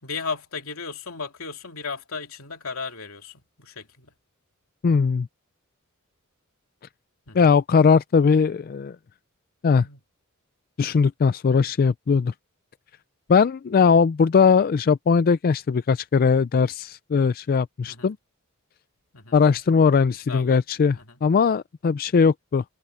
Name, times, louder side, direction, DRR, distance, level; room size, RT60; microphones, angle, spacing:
voice 1, 0.0-4.1 7.3-7.4 9.8-10.0 17.9-18.1 19.1-19.3 20.1-20.6 20.9-21.1, left 4 dB, 80° left, 2.8 m, -35 dB
voice 2, 4.8-5.3 7.3-8.9 9.6-9.9 10.8-12.3 13.3-18.2 19.3-22.6, left 5 dB, 45° left, 0.4 m, -19 dB
head